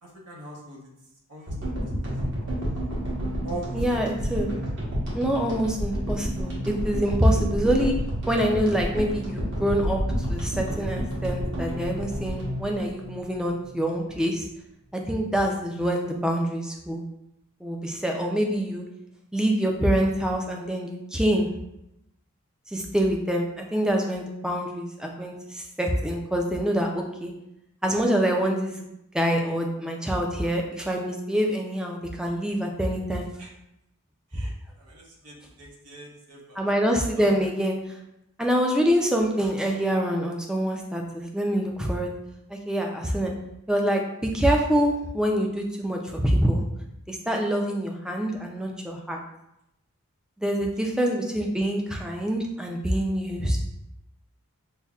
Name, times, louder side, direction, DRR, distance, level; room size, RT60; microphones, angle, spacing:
voice 1, 0.0-0.9 1.3-2.0 2.4-2.6 3.4-3.8 33.4-33.5 34.3-36.6 37.2-37.5 50.7-50.8, right 2 dB, 90° right, -2 dB, 0.9 m, -42 dB
sound 1, 1.5-13.8, equal, 55° right, 1.0 m, -30 dB
voice 2, 3.7-4.5 5.1-7.9 8.3-10.0 10.3-14.5 14.9-17.0 17.6-18.8 19.3-21.5 22.7-27.3 27.8-28.8 29.1-33.3 34.3-34.4 36.6-37.7 38.4-42.1 42.5-43.3 43.7-46.6 47.1-49.2 50.4-53.7, equal, 5° right, 1 dB, 0.3 m, -25 dB
5.4 x 2.1 x 2.3 m, 0.86 s
head